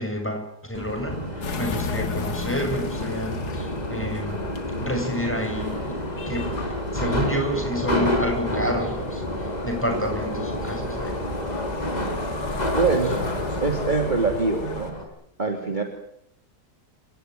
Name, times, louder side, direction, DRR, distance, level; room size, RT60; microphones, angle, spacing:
voice 1, 0.0-4.5 4.8-6.5 6.9-11.1, equal, 5° left, 4 dB, 7.3 m, -29 dB
Subway metro underground, 0.7-15.0, equal, 25° left, 5.5 m, -29 dB
sound 1, 1.4-14.9, left 5 dB, 70° left, 2.3 m, -36 dB
voice 2, 12.7-13.2 13.6-15.0 15.4-15.8, right 4 dB, 25° right, 3 dB, 3.1 m, -23 dB
29.0 x 18.0 x 9.3 m, 0.73 s
omnidirectional pair, 1.8 m